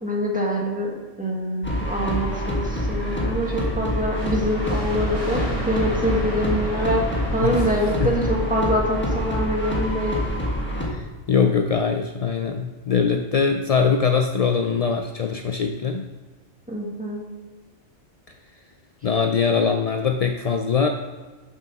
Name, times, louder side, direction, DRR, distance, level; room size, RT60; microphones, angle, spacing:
voice 1, 0.0-7.1 7.3-10.2 16.7-17.2, equal, 5° right, -3 dB, 1.6 m, -25 dB
sound 1, 1.6-10.9, equal, 10° left, 1.4 m, -26 dB
sound 2, 4.1-9.7, equal, 30° right, 1.8 m, -34 dB
voice 2, 10.9-16.1 19.0-20.9, left 6 dB, 60° left, 5 dB, 0.3 m, -22 dB
6.9 x 6.1 x 5.9 m, 1.3 s
omnidirectional pair, 1.2 m